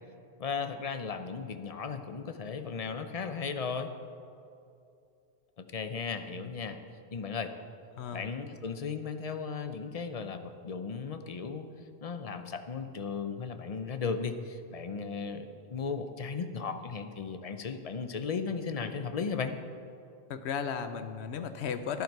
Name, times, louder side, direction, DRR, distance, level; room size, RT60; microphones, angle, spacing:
voice 1, 0.4-3.9 5.6-6.8 7.1-7.5 8.1-11.7 12.0-19.5, left 5 dB, 40° left, 8 dB, 0.6 m, -36 dB
voice 2, 8.0-8.3 20.3-22.0, left 7 dB, 70° left, 10 dB, 1.0 m, -35 dB
11.5 x 10.5 x 4.7 m, 2.6 s
omnidirectional pair, 1.2 m